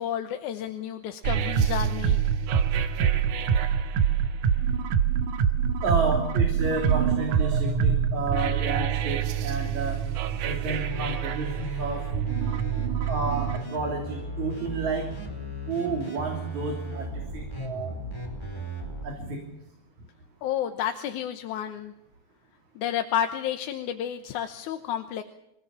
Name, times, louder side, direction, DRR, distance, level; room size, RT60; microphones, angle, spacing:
voice 1, 0.0-2.2 20.4-21.9 22.8-25.2, left 10 dB, 85° left, 7 dB, 2.5 m, -31 dB
sound 1, 1.2-13.6, right 7 dB, 85° right, 2.7 m, -25 dB
voice 2, 5.8-10.0 10.4-12.0 13.0-15.1 15.7-17.9 19.0-19.4, right 3 dB, 70° right, 1 dB, 4.6 m, -31 dB
sound 2, 9.6-19.1, equal, 10° left, 4.3 m, -37 dB
26.0 x 18.0 x 7.2 m, 0.84 s
omnidirectional pair, 3.5 m